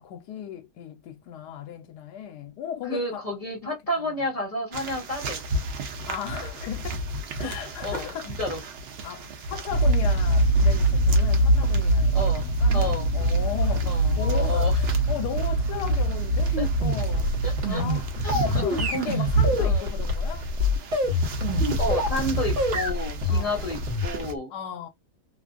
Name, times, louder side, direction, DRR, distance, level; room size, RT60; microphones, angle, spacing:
voice 1, 0.0-3.2 3.6-3.7 4.0-4.2 6.1-7.0 7.4-8.4 9.0-12.2 12.6-17.3 17.7-20.5 23.3-23.8 24.5-24.9, left 9 dB, 90° left, 1.2 m, -36 dB
voice 2, 2.9-5.4 7.4-7.5 7.8-8.6 12.1-13.1 13.8-14.7 16.6-16.7 17.4-17.8 18.2-18.8 19.6-19.8 21.8-24.5, left 1 dB, 25° left, 1.0 m, -31 dB
sound 1, 4.7-24.3, right 2 dB, 65° right, 0.6 m, -33 dB
sound 2, 9.7-17.7, right 1 dB, 70° left, 1.0 m, -22 dB
sound 3, 16.5-22.2 22.5-24.4, left 1 dB, 50° right, 1.4 m, -25 dB
2.9 x 2.5 x 2.4 m
omnidirectional pair, 1.7 m